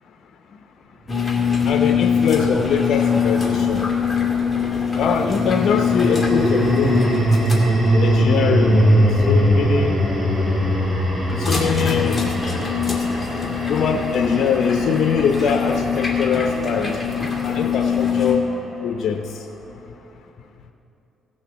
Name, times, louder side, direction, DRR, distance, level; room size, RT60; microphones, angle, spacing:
sound 1, 1.1-18.4, left 6 dB, 20° left, 2.0 m, -24 dB
voice 1, 1.7-3.9 5.0-7.0 8.0-10.0 11.4-12.2 13.7-16.9 17.4-18.4 18.8-19.2, left 6 dB, 65° left, 5 dB, 0.7 m, -22 dB
sound 2, 1.7-4.0 5.6-17.9, equal, 20° right, 3.6 m, -22 dB
16.0 x 6.5 x 7.1 m, 2.9 s
cardioid pair, 90°, 0 cm